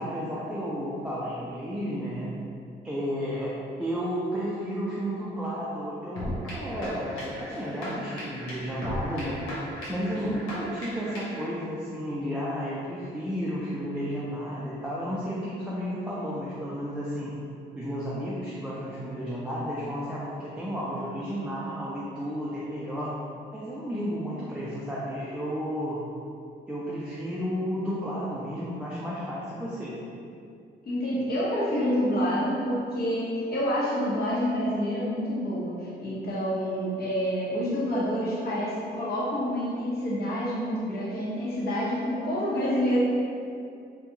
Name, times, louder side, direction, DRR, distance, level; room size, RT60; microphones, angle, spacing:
voice 1, 0.0-2.3 2.8-9.4 9.9-17.3 17.7-23.1 23.5-26.0 26.7-29.9, equal, 5° right, -8 dB, 0.4 m, -32 dB
sound 1, 6.2-11.5, equal, 90° left, 0.8 m, -37 dB
voice 2, 30.9-43.0, equal, 50° left, -8 dB, 0.9 m, -28 dB
2.3 x 2.3 x 2.8 m, 2.5 s
cardioid pair, 90°, 20 cm